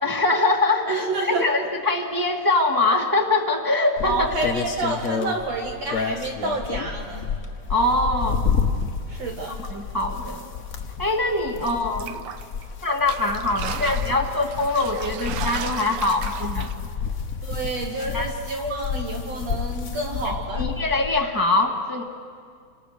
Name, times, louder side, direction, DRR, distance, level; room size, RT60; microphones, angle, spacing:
voice 1, 0.0-1.1 1.3-4.4 7.7-8.4 9.7-10.5 11.0-12.2 12.8-16.7 18.1-18.3 20.2-22.0, left 2 dB, 20° right, 1 dB, 0.5 m, -23 dB
voice 2, 0.9-1.5 4.0-7.2 9.1-9.6 17.4-20.6, right 2 dB, 60° right, 1 dB, 2.8 m, -29 dB
sound 1, 4.0-21.2, left 6 dB, 50° left, 1.0 m, -30 dB
sound 2, 11.6-12.6 13.0-16.7, right 8 dB, 80° right, 1.2 m, -35 dB
28.5 x 26.0 x 6.6 m, 2.1 s
omnidirectional pair, 3.6 m